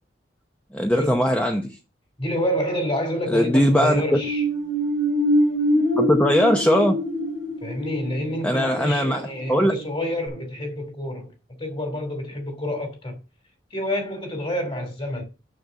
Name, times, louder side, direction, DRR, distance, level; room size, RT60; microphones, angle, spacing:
voice 1, 0.7-1.8 3.3-4.2 5.9-7.0 8.4-9.7, equal, 5° left, 0.8 m, -20 dB
voice 2, 2.2-4.4 7.6-11.3 11.6-13.2 13.7-15.2, left 1 dB, 30° left, 2.8 m, -28 dB
sound 1, 3.6-9.9 10.3-10.4, equal, 75° left, 3.3 m, -25 dB
7.0 x 6.7 x 6.2 m
head